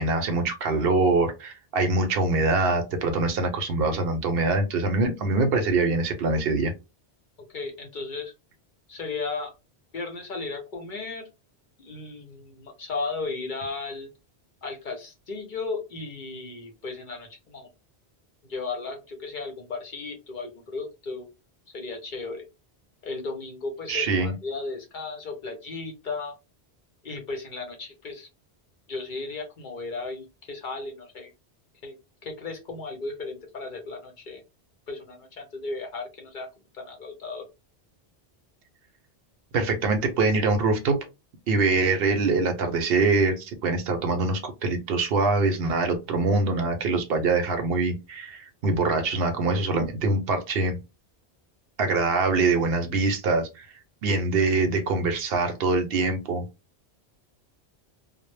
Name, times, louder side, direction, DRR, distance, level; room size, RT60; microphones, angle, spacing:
voice 1, 0.0-6.7 23.9-24.3 39.5-41.0 41.5-50.8 51.8-53.7 54.0-56.4, right 3 dB, 70° right, 6 dB, 0.7 m, -24 dB
voice 2, 7.5-8.3 8.9-9.5 9.9-11.2 11.8-14.1 14.6-17.7 18.5-21.2 21.7-22.4 23.0-26.3 27.0-28.3 28.9-31.3 31.8-31.9 32.2-34.4 34.9-36.5 36.7-37.4, left 3 dB, 55° left, 3 dB, 0.7 m, -35 dB
2.0 x 2.0 x 3.1 m, 0.26 s
omnidirectional pair, 1.1 m